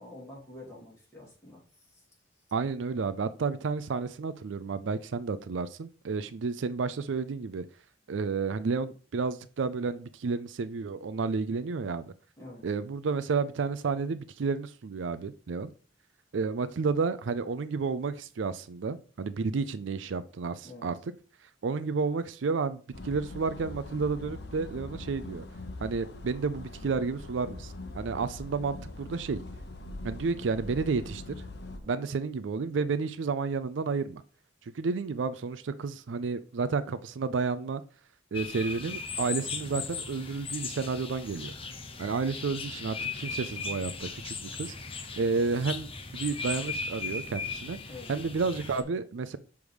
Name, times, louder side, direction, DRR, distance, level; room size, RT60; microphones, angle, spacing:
voice 1, 0.0-1.6 12.4-12.6 20.6-20.9 31.8-32.0 47.9-48.1, left 2 dB, 15° left, 2.8 m, -47 dB
voice 2, 2.5-7.6 8.1-12.1 12.6-15.7 16.3-21.1 21.6-25.4 25.8-29.4 30.0-31.3 31.9-34.2 34.7-37.8 38.3-41.5 42.0-44.7 45.2-47.8 48.1-49.4, right 4 dB, 75° right, 0.4 m, -31 dB
sound 1, 22.9-31.8, left 2 dB, 60° left, 0.8 m, -42 dB
sound 2, 38.3-48.8, left 4 dB, 30° left, 0.8 m, -37 dB
6.2 x 3.5 x 4.7 m
head